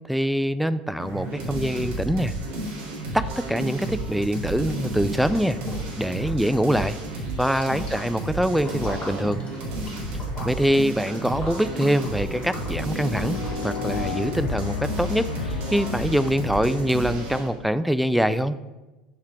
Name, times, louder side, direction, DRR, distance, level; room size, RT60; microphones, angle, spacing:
voice 1, 0.1-2.3 3.1-5.6 6.0-7.0 7.4-9.4 10.4-18.5, equal, ahead, 13 dB, 0.3 m, -24 dB
sound 1, 1.0-17.5, right 1 dB, 60° right, 1.8 m, -32 dB
Liquid, 5.2-5.9 6.1-14.1, left 1 dB, 30° left, 1.9 m, -42 dB
sound 2, 11.0-17.5, left 6 dB, 75° left, 0.5 m, -35 dB
5.5 x 4.9 x 4.5 m, 1.1 s
figure-of-eight pair, 70°, 4 cm